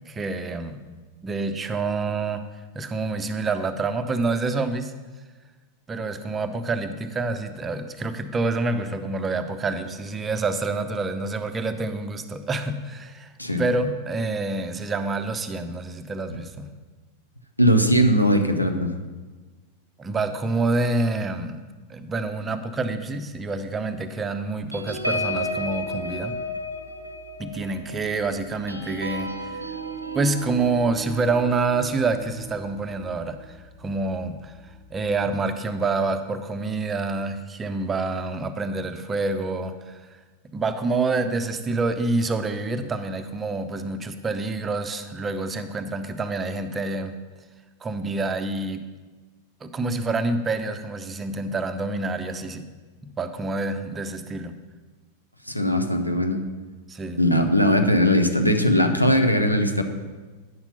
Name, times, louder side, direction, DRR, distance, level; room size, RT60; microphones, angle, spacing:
voice 1, 0.1-0.8 1.2-2.4 2.7-4.9 5.9-13.3 13.6-16.7 20.0-21.6 21.9-26.4 27.4-29.3 30.1-34.6 34.9-40.0 40.5-47.1 47.8-48.8 49.6-52.6 53.0-54.5 56.9-57.2, right 3 dB, 20° right, 9 dB, 0.6 m, -27 dB
voice 2, 17.6-18.9 55.4-56.4 57.2-59.8, equal, 90° left, 5 dB, 0.8 m, -19 dB
sound 1, 24.7-33.6 34.1-34.3 34.6-34.9, equal, 85° right, 0.7 m, -33 dB
9.5 x 5.9 x 5.5 m, 1.3 s
figure-of-eight pair, 90°, 0 cm